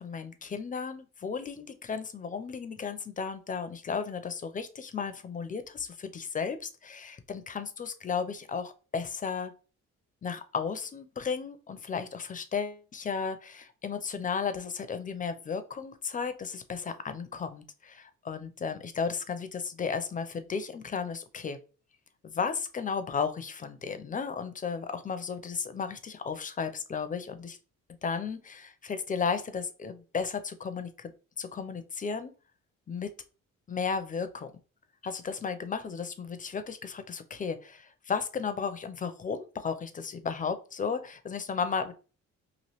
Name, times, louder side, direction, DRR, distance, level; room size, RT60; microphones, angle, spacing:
voice 1, 0.0-9.5 10.2-21.6 22.2-27.6 28.0-31.1 31.4-32.3 32.9-33.1 33.7-34.5 35.0-41.9, left 5 dB, 25° left, 10 dB, 0.4 m, -34 dB
3.0 x 2.5 x 2.9 m, 0.36 s
cardioid pair, 90°, 30 cm